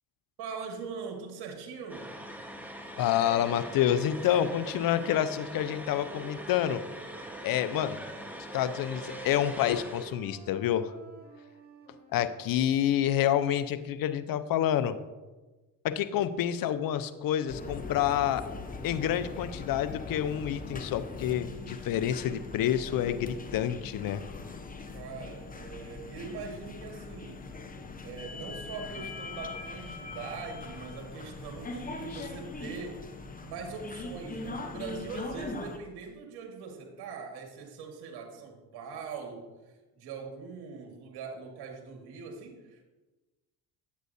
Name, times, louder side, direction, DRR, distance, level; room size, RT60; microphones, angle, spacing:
voice 1, 0.4-2.1 24.9-27.5 28.0-33.1 33.4-39.5 39.9-42.9, right 5 dB, 65° right, 2 dB, 1.8 m, -42 dB
sound 1, 1.9-10.1, equal, 5° right, 1.4 m, -43 dB
voice 2, 3.0-6.8 7.4-8.0 8.5-10.9 12.1-15.0 15.8-18.4 18.8-24.2 32.1-32.2, left 10 dB, 55° left, 12 dB, 0.7 m, -28 dB
sound 2, 3.8-8.0 8.5-12.7, right 3 dB, 20° right, 1.8 m, -50 dB
sound 3, 17.5-35.8, left 3 dB, 20° left, 0.9 m, -41 dB
9.4 x 8.1 x 2.7 m, 1.2 s
supercardioid pair, 70°, 41 cm